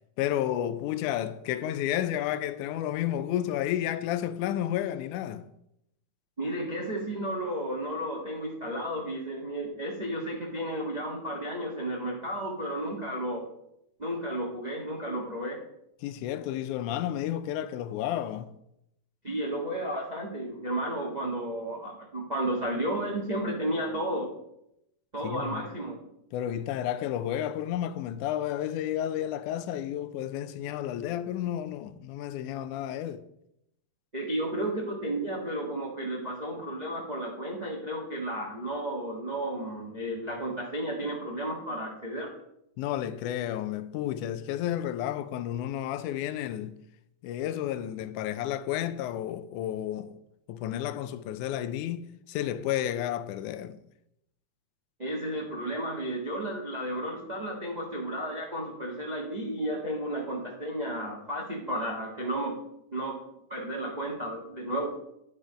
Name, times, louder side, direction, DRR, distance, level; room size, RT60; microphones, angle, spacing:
voice 1, 0.2-5.4 16.0-18.5 25.2-25.6 26.3-33.2 42.8-46.8 47.2-50.2 50.5-53.8, left 11 dB, 85° left, 2.0 m, -31 dB
voice 2, 6.4-13.5 14.0-15.6 19.2-24.3 25.1-26.0 34.1-42.3 55.0-62.6 62.9-63.2 63.5-64.9, right 1 dB, 75° right, 0.4 m, -33 dB
10.5 x 5.4 x 5.1 m
omnidirectional pair, 3.5 m